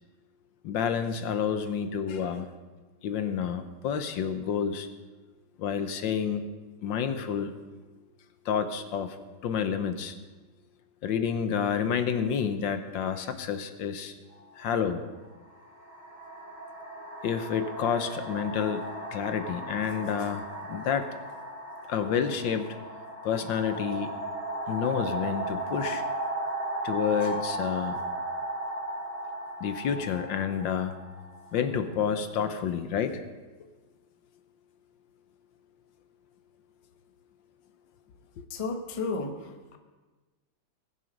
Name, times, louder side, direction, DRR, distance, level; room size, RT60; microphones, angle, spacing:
voice 1, 0.6-2.5 3.0-4.9 5.6-6.5 6.8-7.5 8.5-9.2 9.4-10.1 11.0-14.1 14.6-15.0 17.2-18.8 19.1-21.1 21.9-22.7 23.2-24.1 24.7-26.0 26.8-28.0 29.6-30.9 31.5-33.2, left 7 dB, 70° left, 9 dB, 1.4 m, -29 dB
sound 1, 14.3-14.5 15.4-32.1, right 1 dB, 40° right, 6.1 m, -36 dB
voice 2, 38.5-39.8, left 3 dB, 30° left, 5 dB, 0.6 m, -33 dB
20.0 x 7.3 x 5.2 m, 1.3 s
omnidirectional pair, 2.2 m